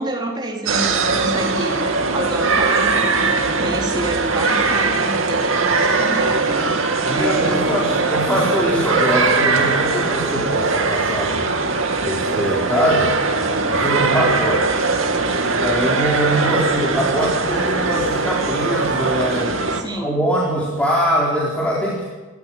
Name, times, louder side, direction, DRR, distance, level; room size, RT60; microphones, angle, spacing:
voice 1, 0.0-7.8 19.7-20.2, right 1 dB, 25° right, -1 dB, 3.9 m, -28 dB
sound 1, 0.7-19.8, right 3 dB, 85° right, 2.6 m, -20 dB
voice 2, 7.0-13.1 13.7-14.8 15.4-22.0, equal, 5° left, -5 dB, 4.4 m, -22 dB
29.0 x 14.5 x 8.8 m, 1.3 s
head